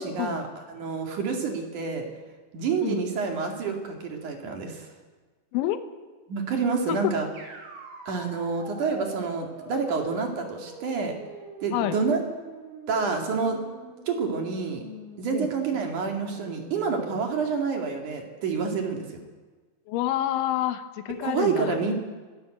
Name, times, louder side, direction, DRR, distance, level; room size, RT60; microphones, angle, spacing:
voice 1, 0.0-2.1 2.5-4.9 6.3-7.3 8.1-11.1 11.6-12.2 12.9-13.6 14.1-14.8 15.2-19.2 21.1-21.9, right 5 dB, 50° right, 3 dB, 2.9 m, -28 dB
sound 1, 7.3-17.2, right 1 dB, 65° right, 6.7 m, -44 dB
voice 2, 19.9-21.8, left 13 dB, 75° left, 10 dB, 3.4 m, -28 dB
24.0 x 18.0 x 7.8 m, 1.3 s
omnidirectional pair, 5.8 m